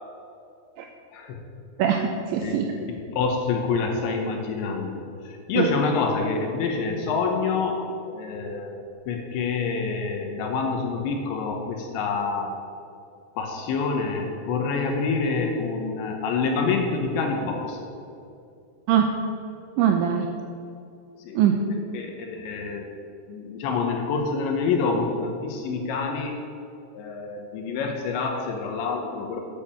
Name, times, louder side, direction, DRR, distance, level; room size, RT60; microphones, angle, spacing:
voice 1, 1.8-2.7 5.6-5.7 18.9-19.1 19.8-20.3 21.4-21.5, right 9 dB, 90° right, 3 dB, 2.6 m, -21 dB
voice 2, 2.4-12.5 13.4-17.9 21.2-21.4 21.7-22.9 23.3-26.4 26.9-29.4, left 4 dB, 75° left, 2 dB, 2.9 m, -27 dB
8.7 x 7.8 x 8.4 m, 2.5 s
omnidirectional pair, 5.9 m